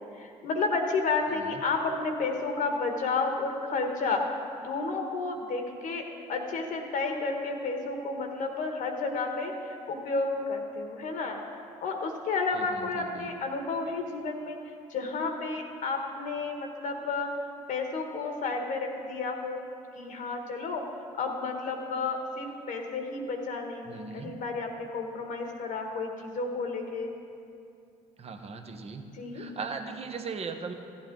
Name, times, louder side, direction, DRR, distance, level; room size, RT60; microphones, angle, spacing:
voice 1, 0.1-4.2 4.6-6.0 6.3-11.4 11.8-14.6 14.9-17.3 17.7-19.7 19.9-20.8 21.2-27.1 29.2-29.4, left 3 dB, 65° left, 3 dB, 1.4 m, -31 dB
voice 2, 1.3-1.6 12.5-13.3 23.8-24.4 28.2-29.0 29.3-30.7, right 4 dB, 45° right, 6 dB, 1.1 m, -39 dB
14.5 x 8.7 x 3.9 m, 2.6 s
hypercardioid pair, 60°, 15 cm